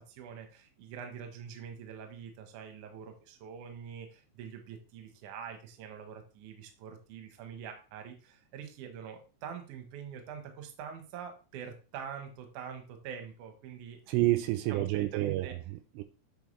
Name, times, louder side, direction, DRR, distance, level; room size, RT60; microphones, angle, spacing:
voice 1, 0.0-14.0 14.7-15.6, right 7 dB, 65° right, 2.1 m, -45 dB
voice 2, 14.1-16.0, right 16 dB, 85° right, 2.8 m, -29 dB
9.3 x 4.6 x 3.3 m
omnidirectional pair, 5.2 m